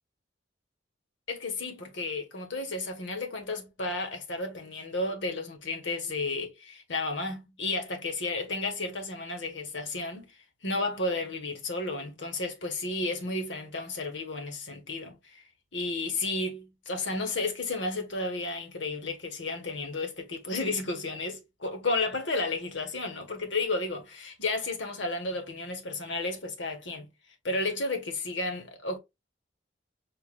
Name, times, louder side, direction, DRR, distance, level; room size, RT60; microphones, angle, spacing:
voice 1, 1.3-10.3 10.6-15.4 15.7-27.1 27.4-29.0, left 2 dB, 80° left, 1.5 m, -32 dB
7.2 x 2.8 x 2.4 m
head